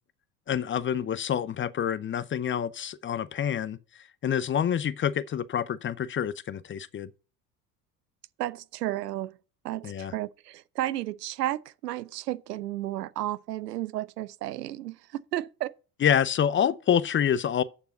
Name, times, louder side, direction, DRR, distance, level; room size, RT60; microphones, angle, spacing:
voice 1, 0.5-3.8 4.2-7.1 9.8-10.1 16.0-17.6, left 9 dB, 25° left, 0.6 m, -27 dB
voice 2, 8.4-9.3 9.6-15.7, right 14 dB, 85° right, 0.6 m, -33 dB
6.9 x 6.9 x 6.6 m
hypercardioid pair, 70°, 47 cm